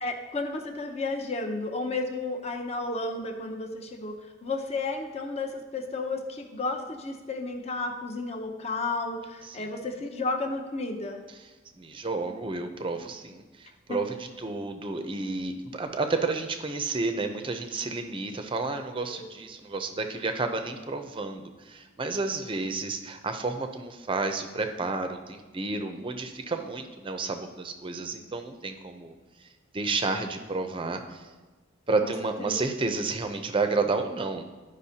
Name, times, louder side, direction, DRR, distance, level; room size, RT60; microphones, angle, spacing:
voice 1, 0.0-11.2 13.9-14.0 19.1-19.3 32.0-32.1 32.4-32.6, left 3 dB, 35° left, 4 dB, 0.7 m, -32 dB
voice 2, 11.7-29.1 29.4-29.5 29.7-31.3 31.9-34.4, right 3 dB, 25° right, 6 dB, 0.5 m, -31 dB
12.0 x 5.1 x 2.8 m, 1.3 s
head